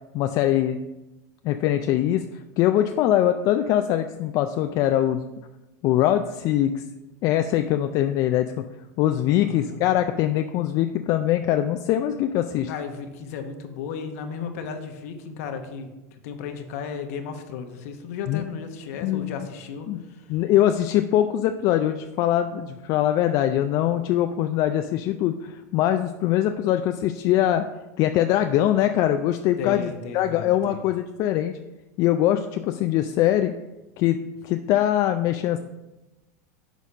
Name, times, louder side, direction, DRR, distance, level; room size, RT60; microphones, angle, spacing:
voice 1, 0.1-0.8 1.4-2.2 2.6-5.2 5.8-6.8 7.2-8.6 9.0-12.7 18.3-18.4 19.0-19.4 19.9-20.0 20.3-27.6 28.0-31.5 32.0-33.5 34.0-34.2 34.4-35.6, left 12 dB, 45° left, 7 dB, 0.3 m, -22 dB
voice 2, 9.4-9.8 12.7-15.9 16.2-19.9 29.6-30.8, left 6 dB, 65° left, 6 dB, 0.9 m, -34 dB
6.3 x 4.0 x 4.9 m, 1.0 s
supercardioid pair, 120°, 8 cm